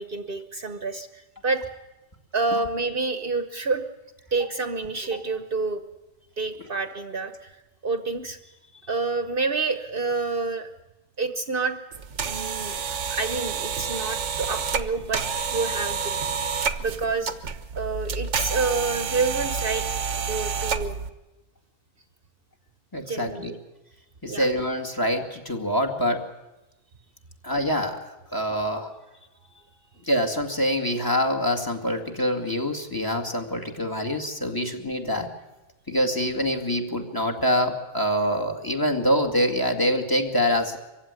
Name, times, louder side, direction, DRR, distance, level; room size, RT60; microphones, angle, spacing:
voice 1, 0.0-1.6 2.3-3.9 4.3-5.8 6.4-7.5 7.8-8.4 8.8-10.7 11.2-11.8 12.2-12.8 13.1-15.2 15.5-16.1 16.8-17.3 17.8-19.8 20.1-21.0 23.1-23.6 24.3-24.5, right 4 dB, 50° right, 8 dB, 1.2 m, -28 dB
sound 1, 11.9-21.1, right 6 dB, 80° right, 1.3 m, -29 dB
voice 2, 22.9-23.5 24.2-26.2 27.4-28.9 30.1-35.3 35.9-40.8, equal, 15° left, 5 dB, 2.1 m, -25 dB
23.5 x 15.5 x 9.7 m, 1.0 s
omnidirectional pair, 1.2 m